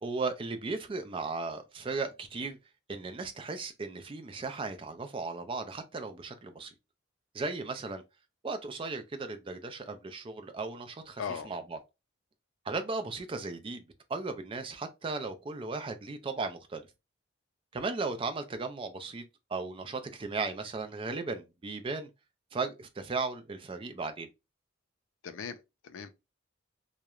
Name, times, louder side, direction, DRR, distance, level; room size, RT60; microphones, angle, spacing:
voice 1, 0.0-2.6 2.9-6.7 7.3-8.0 8.4-11.8 12.7-16.8 17.7-22.1 22.5-24.3, right 3 dB, 25° right, 0.3 m, -36 dB
voice 2, 11.2-11.5 25.2-26.1, left 6 dB, 80° left, 0.4 m, -39 dB
2.9 x 2.1 x 2.3 m
head